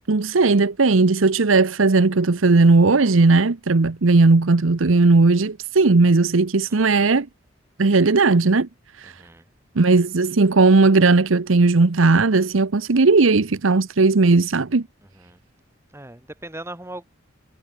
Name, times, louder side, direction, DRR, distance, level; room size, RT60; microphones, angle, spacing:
voice 1, 0.0-7.3 7.8-8.7 9.0-9.1 9.8-14.9, right 3 dB, 75° right, 0.9 m, -17 dB
voice 2, 6.7-7.1 9.1-9.4 15.2-15.4 15.9-17.0, right 1 dB, 15° right, 3.8 m, -39 dB
head